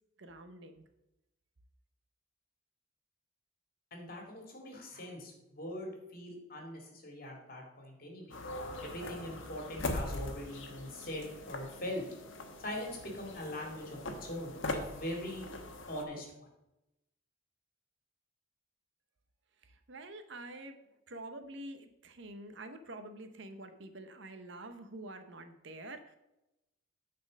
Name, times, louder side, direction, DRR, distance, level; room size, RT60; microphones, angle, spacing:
voice 1, 0.2-0.8 19.6-26.2, right 1 dB, 60° right, 8 dB, 0.8 m, -47 dB
voice 2, 3.9-8.4 8.8-12.0 12.6-15.5 15.9-16.5, left 1 dB, 45° left, 0 dB, 2.2 m, -42 dB
sound 1, 8.3-16.0, left 2 dB, 65° left, 1.1 m, -41 dB
9.6 x 4.4 x 6.2 m, 0.93 s
head